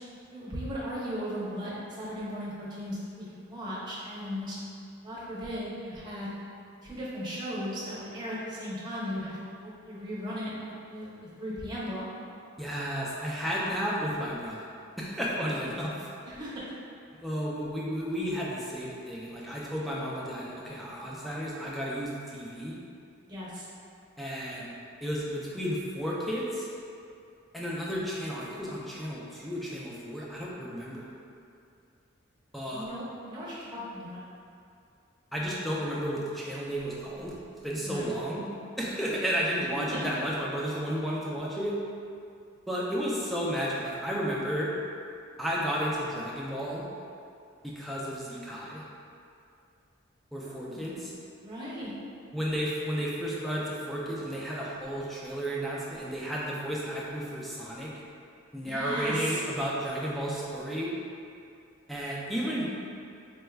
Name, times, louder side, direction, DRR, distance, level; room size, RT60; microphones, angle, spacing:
voice 1, 0.3-4.6 5.0-6.3 6.8-9.4 9.6-12.1 16.2-16.7 23.3-23.6 32.7-34.2 37.8-38.1 39.8-40.1 50.4-50.8 51.4-51.9 58.6-59.4, equal, 20° right, -9 dB, 0.7 m, -37 dB
voice 2, 12.6-14.7 15.0-16.1 17.2-22.7 24.2-24.7 25.0-26.7 27.5-31.1 32.5-32.9 35.3-37.4 37.6-38.5 38.8-41.8 42.7-44.7 45.4-46.9 47.6-48.8 50.3-51.1 52.3-57.9 58.5-60.9 61.9-62.7, equal, ahead, -6 dB, 0.4 m, -32 dB
4.1 x 3.3 x 2.3 m, 2.5 s
head